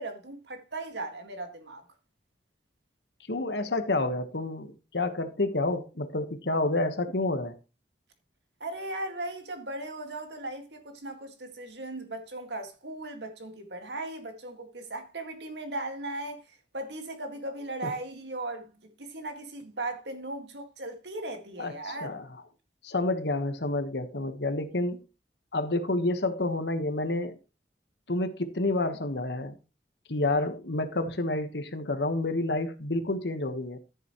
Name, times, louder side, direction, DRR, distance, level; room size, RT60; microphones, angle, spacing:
voice 1, 0.0-1.8 8.6-22.2, right 2 dB, 70° right, 2.0 m, -37 dB
voice 2, 3.3-7.5 17.8-17.9 21.6-22.3 22.8-25.0 25.5-27.4 28.1-29.6 30.1-33.8, left 2 dB, 70° left, 1.3 m, -29 dB
13.5 x 7.2 x 3.1 m
head